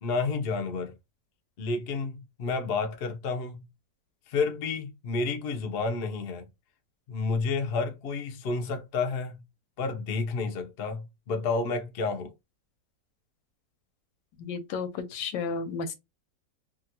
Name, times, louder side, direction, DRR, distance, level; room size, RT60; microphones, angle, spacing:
voice 1, 0.0-0.9 1.6-3.6 4.3-6.4 7.1-9.4 9.8-12.3, left 4 dB, 65° left, 0.6 m, -30 dB
voice 2, 14.4-15.9, left 5 dB, 90° left, 1.3 m, -33 dB
2.8 x 2.4 x 2.8 m
omnidirectional pair, 1.9 m